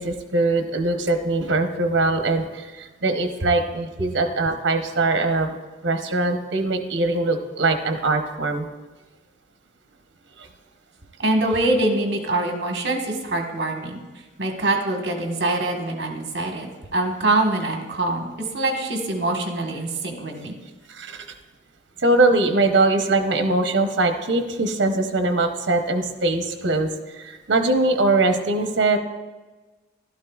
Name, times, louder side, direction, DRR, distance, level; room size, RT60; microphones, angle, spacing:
voice 1, 0.0-5.5 5.8-8.7 10.4-10.5 20.9-21.3 22.0-26.9 27.1-29.0, right 2 dB, 75° right, 5 dB, 0.9 m, -22 dB
voice 2, 11.2-14.0 14.4-18.3 18.5-20.5, right 2 dB, 60° right, 2 dB, 1.4 m, -24 dB
12.5 x 12.0 x 2.4 m, 1.3 s
head